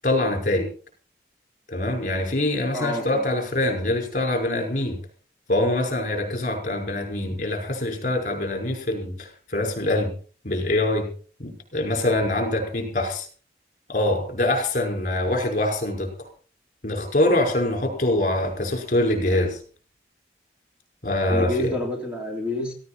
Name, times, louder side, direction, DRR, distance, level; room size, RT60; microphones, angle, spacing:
voice 1, 0.0-0.7 1.7-5.0 5.5-10.1 10.4-11.1 11.4-13.3 13.9-16.3 16.8-19.6 21.0-21.7, left 1 dB, 45° left, 4 dB, 5.4 m, -24 dB
voice 2, 2.7-3.3 21.3-22.7, left 1 dB, 5° right, 0 dB, 3.5 m, -28 dB
17.5 x 15.5 x 4.4 m, 0.40 s
head